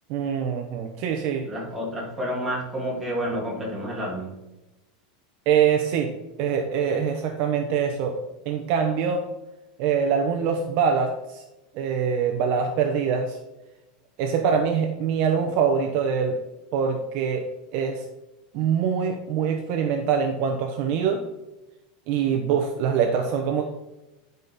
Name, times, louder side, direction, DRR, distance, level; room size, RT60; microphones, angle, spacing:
voice 1, 0.1-1.4 5.5-6.1 6.4-8.2 8.5-9.2 9.8-11.4 11.7-13.4 14.2-16.4 16.7-18.0 18.5-21.2 22.1-23.6, right 7 dB, 40° right, 3 dB, 0.8 m, -24 dB
voice 2, 1.5-4.4, equal, 5° right, -5 dB, 1.9 m, -29 dB
10.0 x 5.2 x 4.1 m, 1.0 s
supercardioid pair, 175°, 4 cm